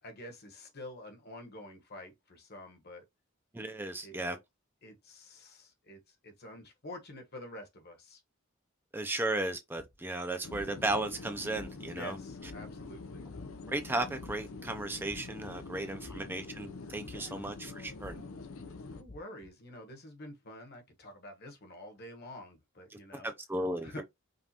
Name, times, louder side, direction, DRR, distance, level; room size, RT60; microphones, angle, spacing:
voice 1, 0.0-3.0 4.0-4.2 4.8-8.2 11.9-13.3 15.8-16.2 17.1-17.4 18.8-23.3 23.8-24.0, left 1 dB, 50° left, 1.2 m, -48 dB
voice 2, 3.5-4.4 8.9-12.2 13.7-18.2 22.9-24.0, right 2 dB, 10° right, 0.4 m, -35 dB
sound 1, 9.8-9.9 10.5-10.9 11.5-12.0 12.4-12.8 13.3-13.7 14.2-14.6 15.0-15.7 16.0-16.5 17.0-17.5 18.0-18.4 19.0-19.5, left 2 dB, 10° left, 0.8 m, -50 dB
sound 2, 10.4-19.0, left 3 dB, 80° left, 0.6 m, -45 dB
5.2 x 2.5 x 2.8 m
head